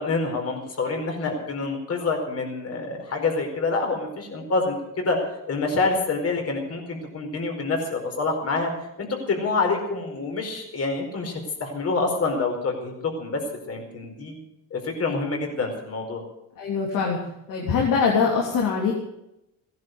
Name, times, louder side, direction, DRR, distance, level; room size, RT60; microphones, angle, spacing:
voice 1, 0.0-5.2 5.5-8.7 9.0-13.4 13.7-14.4 14.7-16.2, left 3 dB, 45° left, 3 dB, 4.7 m, -27 dB
voice 2, 16.6-17.2 17.5-18.9, left 5 dB, 75° left, -1 dB, 3.4 m, -22 dB
16.5 x 10.5 x 8.0 m, 0.85 s
cardioid pair, 100°, 33 cm